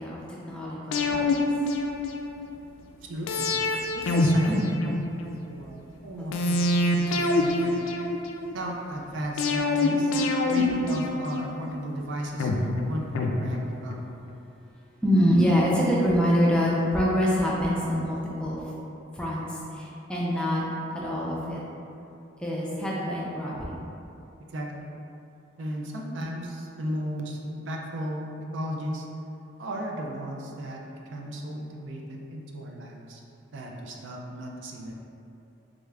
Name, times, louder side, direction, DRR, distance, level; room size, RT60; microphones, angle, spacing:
voice 1, 0.0-1.4 4.5-4.6 6.2-6.3 15.0-18.6 19.1-20.6 20.9-21.6 22.4-23.8, equal, 5° left, -6 dB, 0.4 m, -25 dB
sound 1, 0.9-2.5 3.3-5.4 6.3-8.5 9.4-11.7 12.4-14.1 14.4-14.5, left 2 dB, 80° left, 0.3 m, -26 dB
voice 2, 3.0-3.5 3.9-4.9 5.4-6.6 7.0-8.0 8.5-10.1 10.5-12.5 12.9-14.0 24.5-24.9 25.6-29.1 29.6-30.8 31.1-33.2 33.5-34.9, equal, 65° right, 0 dB, 0.4 m, -35 dB
3.6 x 2.4 x 3.2 m, 2.7 s
head